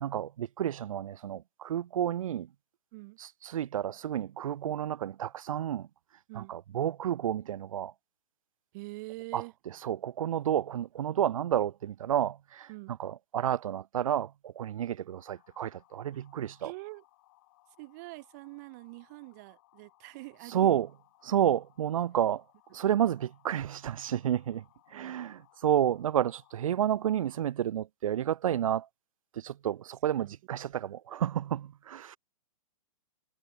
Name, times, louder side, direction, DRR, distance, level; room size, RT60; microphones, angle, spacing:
voice 1, 0.0-2.5 3.2-5.9 6.4-7.9 9.3-9.4 9.8-12.7 13.0-16.7 20.5-20.9 21.2-22.4 22.7-24.6 24.9-28.9 29.4-32.2, right 10 dB, 70° right, 0.5 m, -30 dB
voice 2, 8.7-9.5 12.7-13.0 16.6-17.0 17.8-20.8 24.9-25.2 30.2-30.3, right 25 dB, 30° right, 1.2 m, -45 dB
sound 1, 15.1-27.4, left 19 dB, 35° left, 6.4 m, -65 dB
hypercardioid pair, 155°, 18 cm